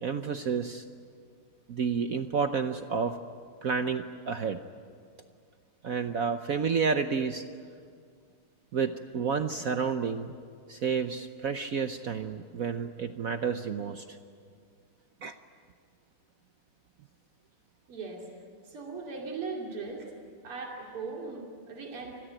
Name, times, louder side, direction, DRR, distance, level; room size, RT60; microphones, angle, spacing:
voice 1, 0.0-0.8 1.7-3.2 3.6-4.6 5.8-7.4 8.7-10.3 10.7-14.0 15.2-15.3, right 6 dB, 60° right, 8 dB, 0.9 m, -30 dB
voice 2, 17.9-18.3 18.7-20.1 20.4-22.2, right 4 dB, 85° right, 0 dB, 3.5 m, -38 dB
28.0 x 21.5 x 9.1 m, 2.2 s
omnidirectional pair, 2.4 m